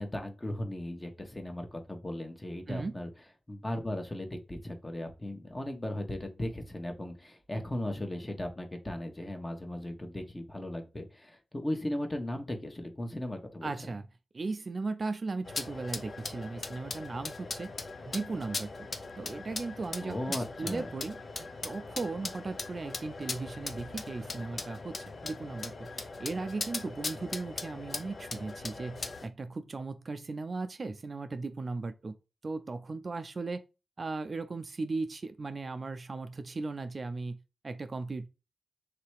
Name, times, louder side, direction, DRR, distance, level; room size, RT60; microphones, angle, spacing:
voice 1, 0.0-3.1 3.5-13.7 20.0-20.9, left 1 dB, 20° left, 1.1 m, -37 dB
voice 2, 2.7-3.0 13.6-14.1 14.3-17.7 18.1-18.9 19.2-25.0 25.2-32.2 32.4-33.6 34.0-38.3, right 3 dB, 50° right, 0.4 m, -37 dB
sound 1, 15.4-29.3, left 3 dB, 50° left, 0.6 m, -40 dB
3.2 x 2.9 x 4.6 m
cardioid pair, 65°, 0 cm